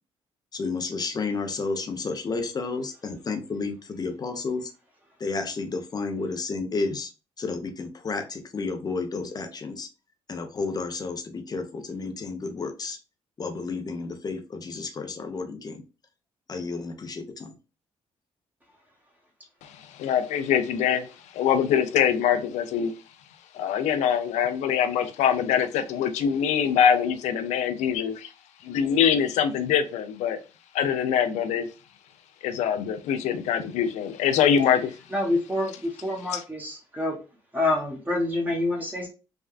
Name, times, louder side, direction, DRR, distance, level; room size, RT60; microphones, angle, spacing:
voice 1, 0.5-4.7 5.2-7.1 7.4-9.9 10.3-13.0 13.4-15.8 16.5-17.6, left 4 dB, 35° left, 6 dB, 0.6 m, -31 dB
voice 2, 19.6-22.9 23.5-28.3 28.6-30.4 30.7-31.7 32.4-35.0 36.3-36.4, left 8 dB, 90° left, 10 dB, 0.4 m, -24 dB
voice 3, 35.1-35.7 36.0-37.2 37.5-39.1, left 2 dB, 15° right, -1 dB, 1.0 m, -26 dB
3.3 x 2.4 x 2.3 m, 0.32 s
cardioid pair, 95°, 12 cm